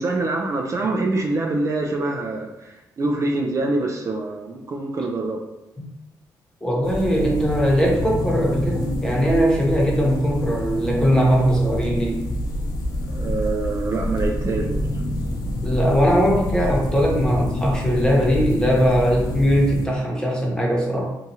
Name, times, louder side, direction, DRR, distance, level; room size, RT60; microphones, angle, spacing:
voice 1, 0.0-5.4 13.0-14.8, right 2 dB, 45° right, 0 dB, 0.4 m, -25 dB
voice 2, 6.6-12.3 15.6-21.1, equal, 10° left, -2 dB, 0.9 m, -20 dB
sound 1, 6.8-19.9, left 1 dB, 60° left, 0.6 m, -27 dB
2.8 x 2.3 x 2.8 m, 0.94 s
supercardioid pair, 60°, 8 cm